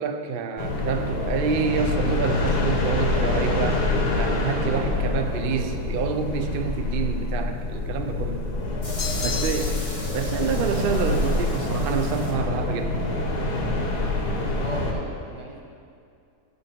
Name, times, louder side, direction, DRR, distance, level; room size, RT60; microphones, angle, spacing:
voice 1, 0.0-3.8 4.1-8.5 9.2-9.8 10.1-13.0, right 6 dB, 60° right, 6 dB, 0.5 m, -28 dB
sound 1, 0.6-14.9, left 2 dB, 85° left, 1.8 m, -26 dB
sound 2, 1.9-2.7 3.2-3.8 4.7-4.8 8.8-12.3, left 1 dB, 25° left, 1.2 m, -40 dB
voice 2, 5.1-5.4 9.2-9.8 14.5-15.6, right 2 dB, 20° right, -1 dB, 1.1 m, -38 dB
sound 3, 9.0-10.0, left 7 dB, 60° left, 0.7 m, -32 dB
16.0 x 5.6 x 4.4 m, 2.4 s
omnidirectional pair, 1.7 m